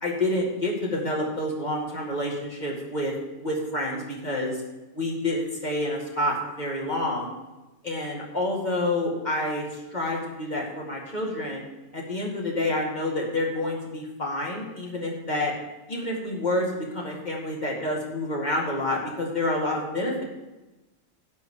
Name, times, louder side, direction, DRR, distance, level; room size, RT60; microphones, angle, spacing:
voice 1, 0.0-4.6 4.9-7.3 7.8-9.6 9.9-11.7 11.9-15.5 15.9-20.2, left 1 dB, 25° left, -2 dB, 2.2 m, -28 dB
11.5 x 5.1 x 8.3 m, 1.1 s
omnidirectional pair, 1.8 m